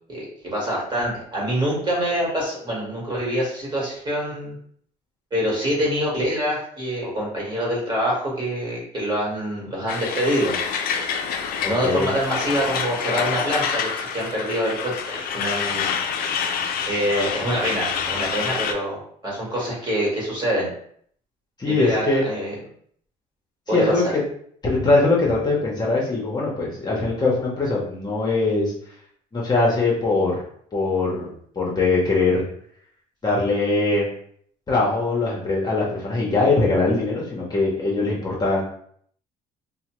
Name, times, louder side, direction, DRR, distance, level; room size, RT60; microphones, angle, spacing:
voice 1, 0.1-4.6 5.3-10.6 11.6-15.9 16.9-20.7 21.7-22.5 23.7-24.0, equal, 25° right, -4 dB, 1.3 m, -25 dB
Truck, 9.9-18.7, left 7 dB, 60° left, 0.4 m, -27 dB
voice 2, 11.6-12.1 21.6-22.2 23.7-24.2 24.6-28.7 29.3-30.4 30.7-32.4 33.2-34.1 34.7-38.7, left 3 dB, 25° left, -4 dB, 0.8 m, -21 dB
2.7 x 2.1 x 3.0 m, 0.63 s
cardioid pair, 110°, 17 cm